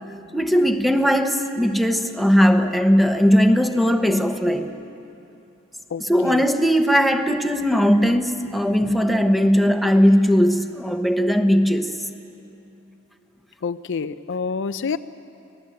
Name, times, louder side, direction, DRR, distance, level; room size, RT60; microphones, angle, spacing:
voice 1, 0.3-4.7 6.0-11.9, equal, ahead, 6 dB, 1.0 m, -18 dB
voice 2, 5.9-6.5 13.6-15.0, left 5 dB, 60° left, 12 dB, 0.5 m, -28 dB
25.5 x 18.0 x 7.8 m, 2.8 s
head